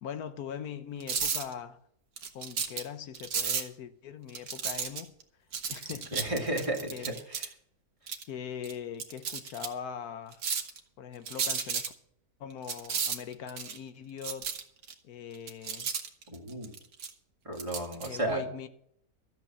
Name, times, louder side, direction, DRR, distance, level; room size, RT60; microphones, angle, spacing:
voice 1, 0.0-1.8 2.3-5.1 5.7-6.3 6.9-7.1 8.3-10.4 11.0-11.9 12.4-14.5 15.0-15.9 18.0-18.7, left 8 dB, 90° left, 1.4 m, -41 dB
sound 1, 1.0-1.5 2.2-2.8 3.1-3.6 4.3-5.2 5.5-7.5 8.1-8.2 8.6-8.7 9.0-9.7 10.3-10.8 11.3-11.9 12.7-13.8 14.2-14.9 15.3-17.1 17.6-18.1, right 6 dB, 80° right, 1.7 m, -33 dB
voice 2, 6.1-7.5 16.3-16.7 17.4-18.4, right 1 dB, 20° right, 2.2 m, -33 dB
13.5 x 7.4 x 7.3 m
omnidirectional pair, 1.6 m